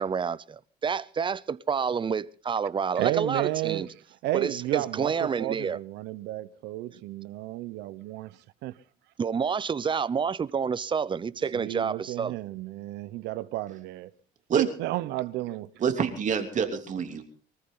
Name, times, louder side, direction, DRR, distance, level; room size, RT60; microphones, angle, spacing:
voice 1, 0.0-3.9 4.3-5.8 9.2-12.4, right 6 dB, 30° right, 0.7 m, -29 dB
voice 2, 3.0-3.9 4.2-8.7 11.5-14.1 14.5-15.7, right 15 dB, 90° right, 1.0 m, -32 dB
voice 3, 15.8-17.2, right 7 dB, 45° right, 3.1 m, -27 dB
24.0 x 14.0 x 3.9 m
cardioid pair, 110°, 17 cm